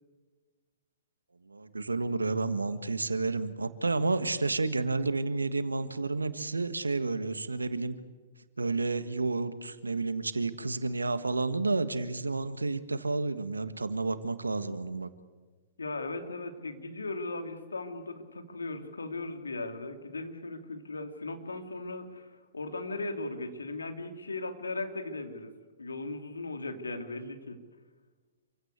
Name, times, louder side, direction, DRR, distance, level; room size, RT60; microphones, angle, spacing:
voice 1, 1.4-8.0 8.6-15.1, right 3 dB, 90° right, 11 dB, 1.6 m, -30 dB
voice 2, 15.8-25.5 25.8-27.6, left 2 dB, 85° left, 5 dB, 2.9 m, -37 dB
28.0 x 16.0 x 8.3 m, 1.4 s
hypercardioid pair, 115°, 0 cm